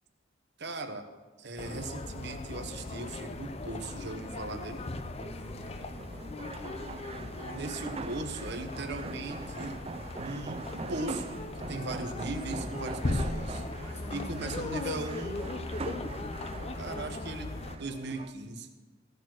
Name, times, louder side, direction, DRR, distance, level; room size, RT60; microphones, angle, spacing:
voice 1, 0.6-1.0 1.4-4.8 7.2-9.7 10.2-11.3 11.7-13.6 14.1-15.4 16.8-18.7, right 2 dB, 60° right, 6 dB, 1.1 m, -38 dB
sound 1, 1.6-17.8, left 2 dB, 35° left, 0.6 m, -38 dB
sound 2, 4.6-18.3, right 3 dB, 30° right, 0.5 m, -43 dB
voice 2, 5.2-6.5 13.7-15.4, equal, 15° left, -2 dB, 2.1 m, -48 dB
15.5 x 6.8 x 6.2 m, 1.3 s
head